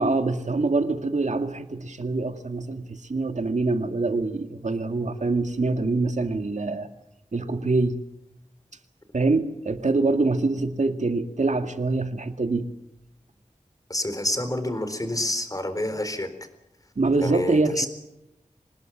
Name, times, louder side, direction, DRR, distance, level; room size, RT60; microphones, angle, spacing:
voice 1, 0.0-6.9 7.3-8.0 9.1-12.7 17.0-17.9, right 3 dB, 70° right, 7 dB, 2.1 m, -25 dB
voice 2, 13.9-16.3 17.2-17.9, left 1 dB, 30° left, 9 dB, 4.0 m, -28 dB
25.5 x 19.5 x 7.3 m, 0.89 s
wide cardioid pair, 70°, 13 cm